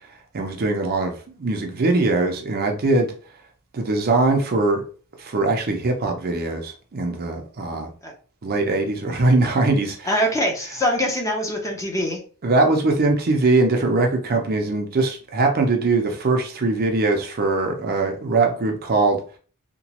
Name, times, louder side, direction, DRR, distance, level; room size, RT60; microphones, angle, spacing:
voice 1, 0.3-3.1 3.7-4.8 5.2-7.9 8.4-10.1 12.4-19.2, right 3 dB, 45° right, 4 dB, 0.5 m, -21 dB
voice 2, 10.0-12.2, equal, 15° left, 1 dB, 0.6 m, -23 dB
2.9 x 2.2 x 2.9 m, 0.39 s
head